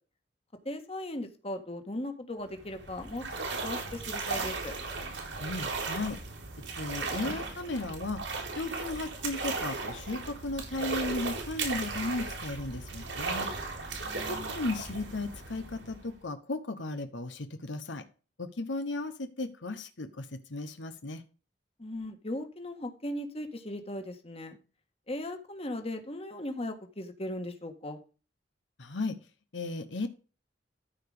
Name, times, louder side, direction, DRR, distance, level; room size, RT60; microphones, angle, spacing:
voice 1, 0.6-4.7 14.0-14.5 21.8-24.6 25.1-28.0, left 1 dB, 35° left, 6 dB, 1.7 m, -38 dB
sound 1, 2.5-16.2, right 3 dB, 90° right, 3.9 m, -36 dB
voice 2, 5.4-6.2 6.8-8.2 8.6-13.5 14.3-18.0 18.4-21.2 28.8-29.2 29.5-30.1, left 2 dB, 85° left, 9 dB, 1.1 m, -35 dB
13.5 x 5.0 x 5.0 m, 0.35 s
head